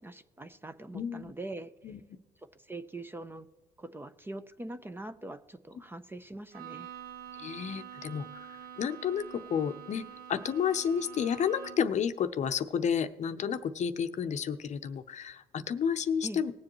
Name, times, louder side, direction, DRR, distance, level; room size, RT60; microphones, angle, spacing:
voice 1, 0.0-2.0 2.5-3.5 3.8-6.9 16.2-16.4, right 2 dB, 15° right, 11 dB, 0.5 m, -43 dB
voice 2, 0.9-1.3 1.8-2.0 7.4-16.5, left 7 dB, 45° left, 10 dB, 0.7 m, -31 dB
Bowed string instrument, 6.5-12.0, right 9 dB, 65° right, 1.2 m, -46 dB
20.0 x 7.5 x 3.0 m, 1.2 s
cardioid pair, 110°, 17 cm